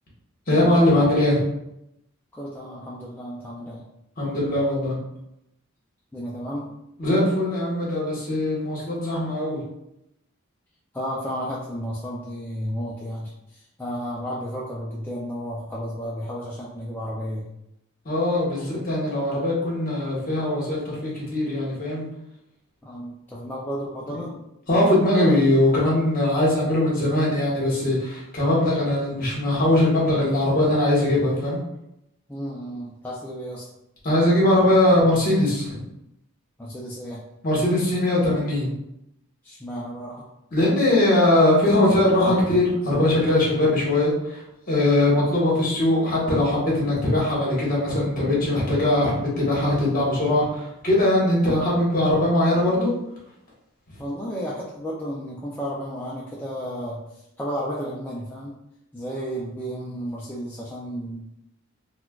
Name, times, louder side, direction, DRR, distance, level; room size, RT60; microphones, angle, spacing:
voice 1, 0.5-1.4 4.2-5.0 7.0-9.6 18.0-22.1 24.2-24.3 24.7-31.6 34.0-35.8 37.4-38.7 40.5-44.4 44.7-52.9, left 1 dB, 40° left, -5 dB, 1.3 m, -21 dB
voice 2, 2.3-3.9 6.1-6.8 10.9-17.5 18.6-18.7 22.8-24.3 32.3-33.7 36.6-37.2 39.4-40.2 45.0-45.2 54.0-58.6 58.9-61.3, equal, 10° left, -6 dB, 0.3 m, -33 dB
4.2 x 2.2 x 2.3 m, 0.83 s
head